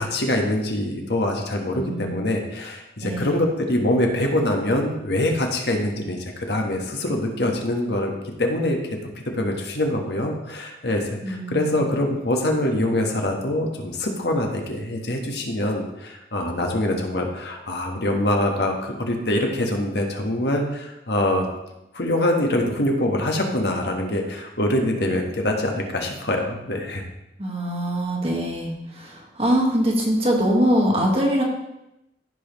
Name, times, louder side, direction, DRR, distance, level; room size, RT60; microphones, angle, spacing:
voice 1, 0.0-8.1 8.4-8.8 9.1-21.4 21.9-27.0, left 1 dB, 70° left, 2 dB, 1.4 m, -24 dB
voice 2, 1.8-2.3 3.0-3.4 11.2-11.9 27.4-31.4, equal, 35° right, 0 dB, 1.6 m, -23 dB
14.5 x 5.5 x 3.1 m, 0.91 s
head